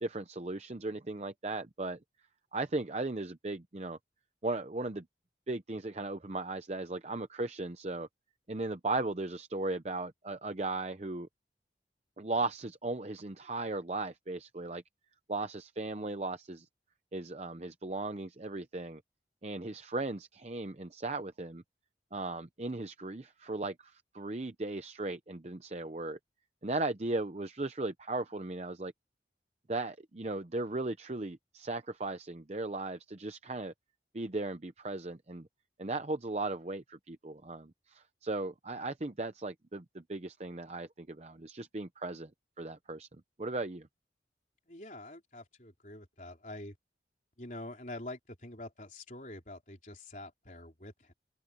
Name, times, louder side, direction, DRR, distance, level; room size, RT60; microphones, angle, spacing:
voice 1, 0.0-2.0 2.5-4.0 4.4-5.1 5.5-8.1 8.5-11.3 12.2-14.8 15.3-16.7 17.1-19.0 19.4-21.6 22.1-26.2 26.6-28.9 29.7-33.7 34.1-35.5 35.8-42.3 42.6-43.1 43.4-43.9, right 2 dB, 35° right, 0.7 m, -37 dB
voice 2, 44.7-46.8 47.4-51.1, left 1 dB, 45° left, 4.1 m, -46 dB
head